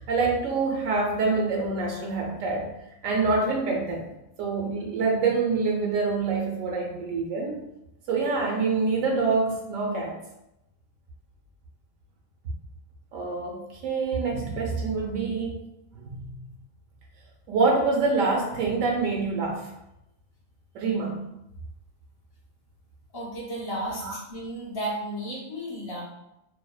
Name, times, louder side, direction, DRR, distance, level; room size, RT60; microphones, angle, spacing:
voice 1, 0.0-2.7 3.0-4.0 4.4-7.6 8.1-10.2 13.1-15.6 15.9-16.3 17.5-19.7 20.7-21.2 24.0-24.2, right 4 dB, 80° right, 0 dB, 1.0 m, -26 dB
voice 2, 23.1-26.0, right 1 dB, 30° left, -4 dB, 0.4 m, -33 dB
2.6 x 2.1 x 2.2 m, 0.87 s
omnidirectional pair, 1.4 m